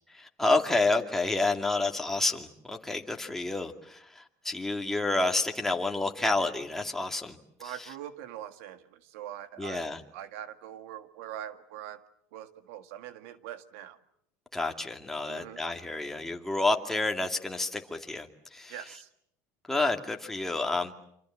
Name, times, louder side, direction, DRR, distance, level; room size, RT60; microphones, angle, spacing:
voice 1, 0.1-7.4 7.6-7.9 9.6-10.0 14.5-18.8 19.7-21.0, left 2 dB, 5° left, 3 dB, 2.4 m, -29 dB
voice 2, 7.6-9.8 10.1-12.0 12.3-14.0 15.3-15.6 18.7-19.1, right 11 dB, 90° right, 10 dB, 1.8 m, -43 dB
27.5 x 26.5 x 7.5 m, 0.73 s
cardioid pair, 135°, 7 cm